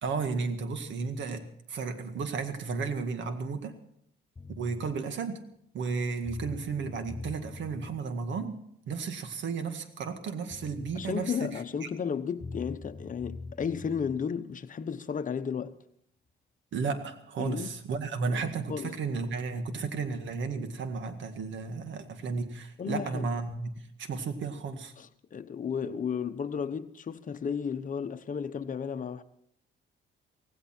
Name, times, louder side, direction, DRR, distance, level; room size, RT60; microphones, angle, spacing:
voice 1, 0.0-3.7 4.6-5.4 5.7-11.6 16.7-24.9, right 4 dB, 70° right, 1.9 m, -33 dB
sound 1, 4.4-4.9 5.9-6.0 6.2-7.9 10.1-10.2 10.5-11.2 12.4-14.2, left 3 dB, 20° left, 4.5 m, -43 dB
voice 2, 10.9-15.8 17.4-17.7 18.3-18.4 18.7-19.0 22.8-23.3 25.0-29.2, left 7 dB, 40° left, 1.0 m, -33 dB
17.5 x 16.5 x 4.5 m
cardioid pair, 90°, 20 cm